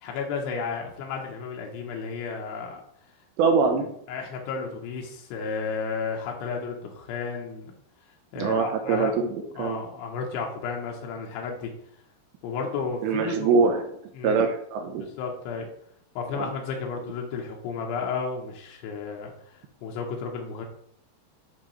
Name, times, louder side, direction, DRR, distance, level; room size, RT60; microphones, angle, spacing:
voice 1, 0.0-2.8 4.1-7.7 8.3-9.2 9.6-11.7 12.4-13.5 14.2-14.4 15.0-15.7 16.2-19.3 19.8-20.7, left 5 dB, 85° left, 1 dB, 3.0 m, -32 dB
voice 2, 3.4-3.9 8.4-9.8 13.0-13.9 14.2-15.1 16.4-16.5, right 5 dB, 80° right, 5 dB, 2.3 m, -23 dB
10.0 x 3.9 x 3.0 m, 0.69 s
omnidirectional pair, 4.8 m